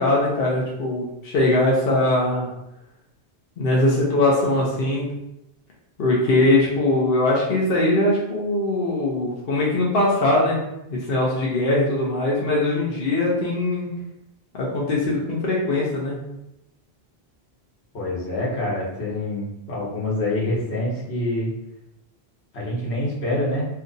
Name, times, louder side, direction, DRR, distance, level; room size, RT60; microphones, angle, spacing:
voice 1, 0.0-2.5 3.6-5.1 6.0-10.6 11.1-13.9 14.5-16.2, left 2 dB, 65° left, -4 dB, 0.9 m, -21 dB
voice 2, 17.9-21.5 22.5-23.6, left 1 dB, 80° left, -4 dB, 1.3 m, -26 dB
2.7 x 2.4 x 3.8 m, 0.85 s
omnidirectional pair, 1.1 m